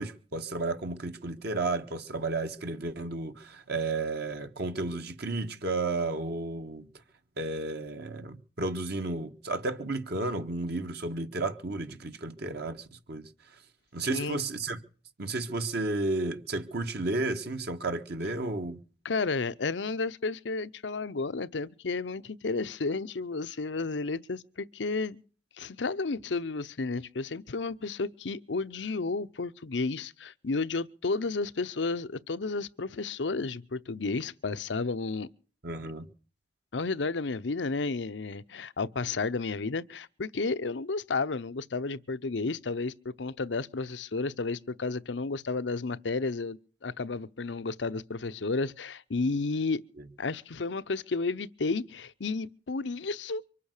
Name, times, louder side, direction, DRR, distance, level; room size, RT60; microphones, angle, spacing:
voice 1, 0.0-6.8 7.4-13.3 13.9-14.8 15.2-18.8 35.6-36.0, right 2 dB, 65° right, 1.5 m, -32 dB
voice 2, 14.0-14.4 19.0-25.2 25.6-35.3 36.7-49.8 50.2-53.4, left 3 dB, 90° left, 0.7 m, -32 dB
24.5 x 8.5 x 6.6 m
head